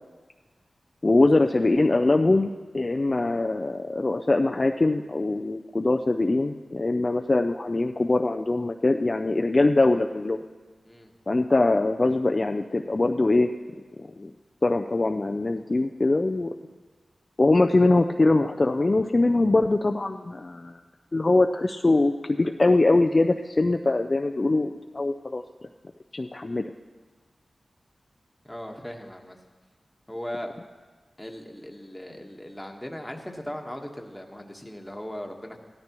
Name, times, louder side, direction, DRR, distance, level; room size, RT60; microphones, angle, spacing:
voice 1, 1.0-10.4 11.3-13.5 14.0-14.3 14.6-16.5 17.4-20.8 21.1-25.4 26.1-26.7, left 2 dB, 40° left, 5 dB, 0.4 m, -22 dB
voice 2, 28.4-29.4 30.1-30.5 31.2-35.6, equal, 10° left, 3 dB, 1.3 m, -38 dB
15.5 x 13.0 x 3.0 m, 1.3 s
wide cardioid pair, 65°, 0 cm